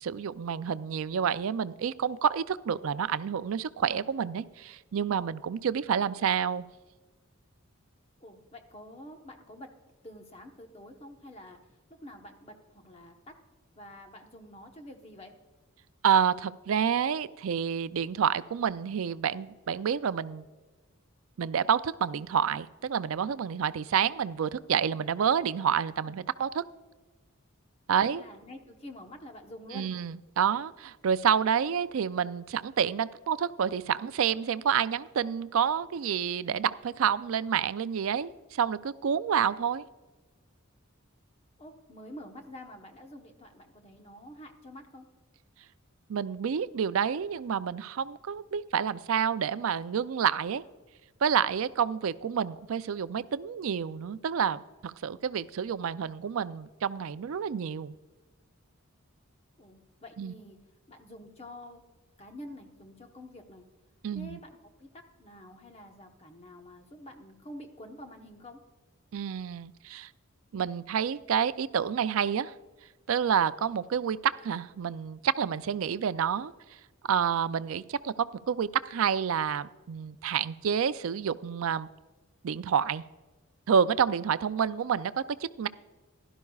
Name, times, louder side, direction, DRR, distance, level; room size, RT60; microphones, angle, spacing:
voice 1, 0.0-6.7 16.0-20.4 21.4-26.6 27.9-28.2 29.7-39.8 46.1-50.6 51.2-57.9 60.2-60.3 64.0-64.4 69.1-70.1 70.5-72.5 73.1-76.5 77.1-81.9 82.4-83.0 83.7-85.7, right 7 dB, 65° right, 15 dB, 0.4 m, -29 dB
voice 2, 8.2-9.7 10.0-11.6 12.0-13.4 13.7-15.3 27.9-29.9 41.6-45.1 59.6-60.6 60.9-61.8 62.2-63.7 64.1-68.6, left 1 dB, 30° left, 4 dB, 1.0 m, -48 dB
16.0 x 12.0 x 2.4 m, 1.2 s
head